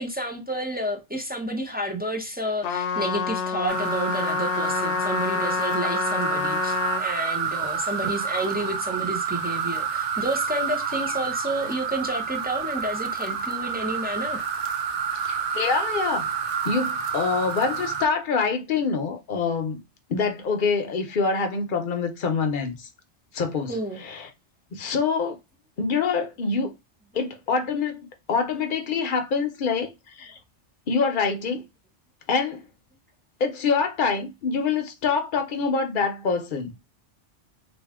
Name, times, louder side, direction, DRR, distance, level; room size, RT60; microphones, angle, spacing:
voice 1, 0.0-14.4 23.7-24.0, right 1 dB, 10° right, 0.6 m, -30 dB
Trumpet, 2.6-7.1, left 7 dB, 80° left, 1.0 m, -28 dB
sound 1, 3.7-18.1, right 6 dB, 60° right, 0.7 m, -29 dB
voice 2, 15.3-16.3 16.6-19.8 20.1-22.9 23.3-24.3 24.7-25.4 25.8-26.7 27.1-30.4 30.9-31.6 32.3-32.6 33.4-36.7, left 5 dB, 50° left, 0.9 m, -25 dB
3.4 x 2.5 x 3.6 m
omnidirectional pair, 1.2 m